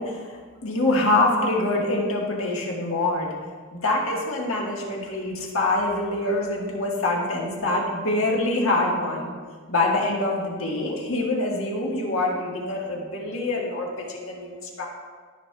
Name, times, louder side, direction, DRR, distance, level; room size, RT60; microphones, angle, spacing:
voice 1, 0.0-3.3 3.7-9.3 9.7-14.9, left 2 dB, 90° left, -2 dB, 1.6 m, -25 dB
13.0 x 6.3 x 2.4 m, 1.5 s
head